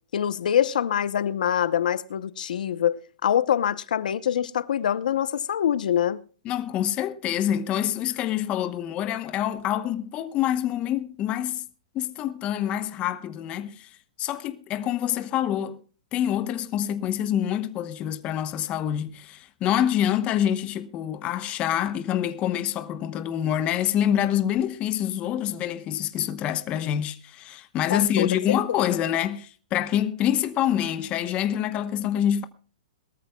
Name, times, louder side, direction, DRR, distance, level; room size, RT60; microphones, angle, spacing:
voice 1, 0.1-6.2 27.9-28.9, left 9 dB, 75° left, 0.8 m, -25 dB
voice 2, 6.4-11.7 11.9-13.9 14.2-15.8 16.1-32.4, left 10 dB, 25° left, 1.0 m, -26 dB
22.5 x 13.5 x 2.3 m
hypercardioid pair, 145°, 4 cm